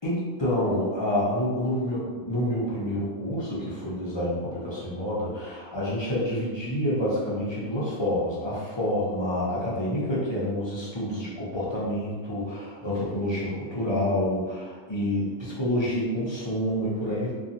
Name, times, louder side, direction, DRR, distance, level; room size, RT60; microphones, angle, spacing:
voice 1, 0.0-17.3, left 1 dB, 35° left, -8 dB, 0.4 m, -28 dB
2.7 x 2.4 x 2.5 m, 1.5 s
omnidirectional pair, 1.2 m